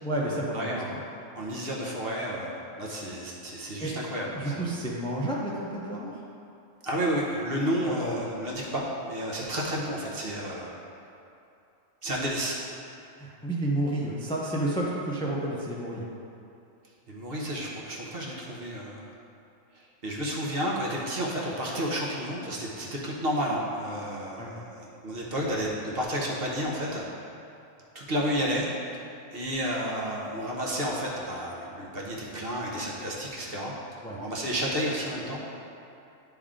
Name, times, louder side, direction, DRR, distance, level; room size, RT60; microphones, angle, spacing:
voice 1, 0.0-1.0 3.8-4.0 4.3-6.2 7.8-8.1 13.2-16.1 24.4-24.5 34.0-34.2, right 1 dB, 5° left, -4 dB, 0.4 m, -31 dB
voice 2, 0.5-0.9 1.3-4.7 6.8-10.7 12.0-12.6 17.1-19.1 19.7-27.2 27.9-28.7 29.3-33.7 34.2-35.4, equal, 50° right, -4 dB, 1.1 m, -31 dB
9.9 x 3.4 x 3.7 m, 2.7 s
omnidirectional pair, 1.4 m